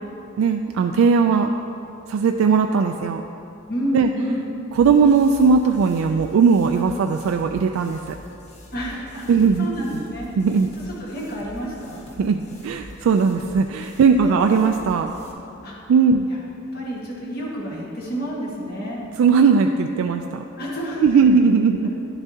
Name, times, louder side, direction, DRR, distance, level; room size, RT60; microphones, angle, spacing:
voice 1, 0.4-1.5 2.1-3.2 3.9-4.1 4.8-8.2 9.3-9.7 10.4-10.7 12.2-15.1 15.9-16.3 19.2-20.4 21.0-21.9, right 5 dB, 80° right, 4 dB, 0.3 m, -18 dB
voice 2, 3.7-4.4 8.7-9.2 9.6-10.3 11.0-12.0 14.1-14.7 15.6-15.8 16.3-16.4 16.7-19.0 20.6-21.2, equal, 50° left, -4 dB, 1.5 m, -29 dB
sound 1, 4.7-15.3, equal, 35° left, 0.9 m, -44 dB
10.5 x 7.0 x 2.8 m, 2.7 s
head